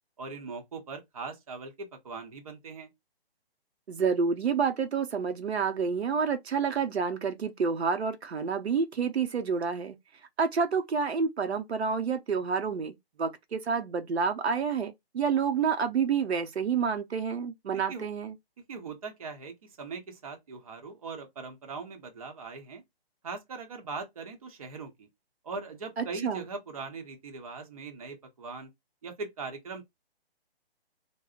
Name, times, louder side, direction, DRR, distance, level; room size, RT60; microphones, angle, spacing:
voice 1, 0.2-2.9 17.9-18.1 18.7-22.8 23.2-25.1 25.4-28.7 29.0-29.8, right 4 dB, 35° right, 0.7 m, -40 dB
voice 2, 3.9-10.0 10.4-18.3 26.0-26.4, right 6 dB, 90° right, 0.7 m, -29 dB
3.7 x 2.0 x 2.4 m
hypercardioid pair, 165°, 31 cm